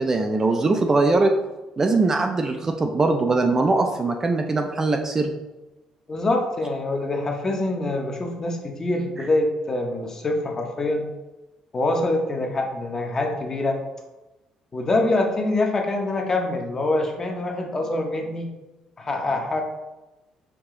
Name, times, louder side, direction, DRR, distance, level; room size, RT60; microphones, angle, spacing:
voice 1, 0.0-1.3 1.8-5.3, right 3 dB, 25° right, 4 dB, 0.4 m, -21 dB
voice 2, 6.1-11.1 11.7-13.8 14.7-18.5 19.0-19.6, left 2 dB, 25° left, 2 dB, 0.8 m, -25 dB
4.8 x 2.8 x 3.6 m, 1.0 s
cardioid pair, 120°, 2 cm